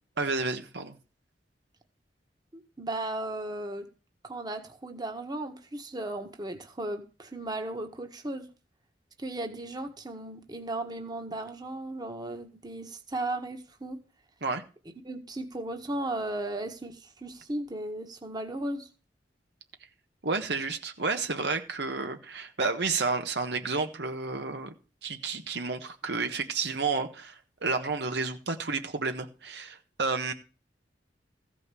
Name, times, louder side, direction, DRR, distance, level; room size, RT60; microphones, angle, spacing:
voice 1, 0.2-0.9 14.4-14.6 20.2-24.7 25.0-30.3, right 4 dB, 65° right, 1.3 m, -31 dB
voice 2, 2.5-3.8 4.2-8.5 9.2-14.0 15.0-18.9, right 1 dB, 25° right, 1.6 m, -36 dB
15.0 x 5.4 x 6.9 m
head